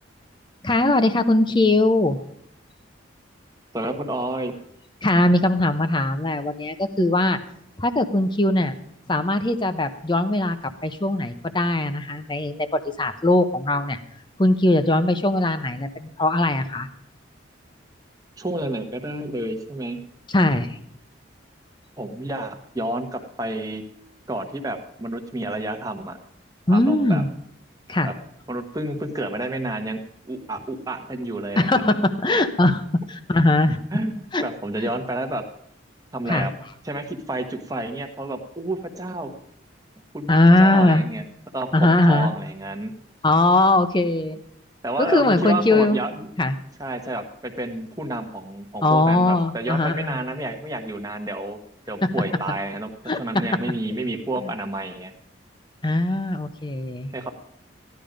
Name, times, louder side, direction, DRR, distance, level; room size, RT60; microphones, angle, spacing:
voice 1, 0.6-2.2 5.0-7.4 7.8-8.7 9.1-14.0 14.4-16.9 20.3-20.8 26.7-27.3 27.9-28.1 31.6-32.8 33.1-33.8 34.3-34.4 36.3-36.5 40.3-41.0 41.7-42.3 43.2-44.4 45.0-46.0 46.4-46.5 48.8-50.2 53.1-53.2 55.8-57.1, left 2 dB, 25° left, 10 dB, 0.7 m, -20 dB
voice 2, 3.7-4.5 18.4-20.0 22.0-23.8 24.3-26.2 26.7-27.2 28.0-28.1 28.5-32.0 33.9-35.5 36.1-36.5 36.8-39.3 40.1-41.2 41.5-42.9 44.8-46.3 46.8-51.6 51.9-55.1 57.1-57.3, right 1 dB, 20° right, 5 dB, 1.2 m, -30 dB
15.0 x 10.5 x 5.1 m, 0.73 s
head